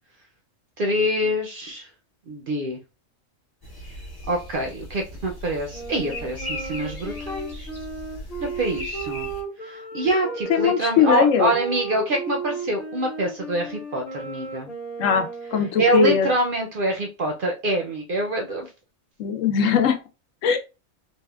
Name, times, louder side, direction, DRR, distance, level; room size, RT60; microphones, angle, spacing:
voice 1, 0.8-1.9 2.3-2.8 4.3-7.7 8.4-9.3 9.6-14.7 15.8-18.7, right 1 dB, 60° right, 2 dB, 0.6 m, -25 dB
sound 1, 3.6-9.4, left 1 dB, 20° left, 0.8 m, -38 dB
Wind instrument woodwind instrument, 5.7-15.8, right 4 dB, 50° left, 1.0 m, -35 dB
voice 2, 10.5-11.5 15.0-16.3 19.2-20.0 20.4-20.6, left 6 dB, 75° left, 7 dB, 1.0 m, -20 dB
3.5 x 2.3 x 2.3 m, 0.29 s
omnidirectional pair, 1.3 m